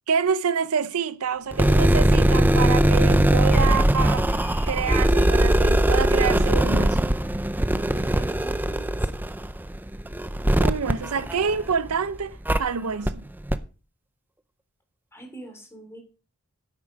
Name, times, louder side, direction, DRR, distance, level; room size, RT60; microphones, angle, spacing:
voice 1, 0.1-4.3 4.7-7.0 10.6-13.2, right 6 dB, 75° right, 0.6 m, -27 dB
sound 1, 1.5-11.9 12.5-12.6 13.1-13.2 13.5-13.6, right 1 dB, 10° right, 0.5 m, -20 dB
sound 2, 3.5-6.0, left 4 dB, 40° left, 5.2 m, -43 dB
voice 2, 8.1-9.1 15.1-16.0, right 2 dB, 10° left, 3.3 m, -43 dB
9.9 x 8.6 x 5.2 m
head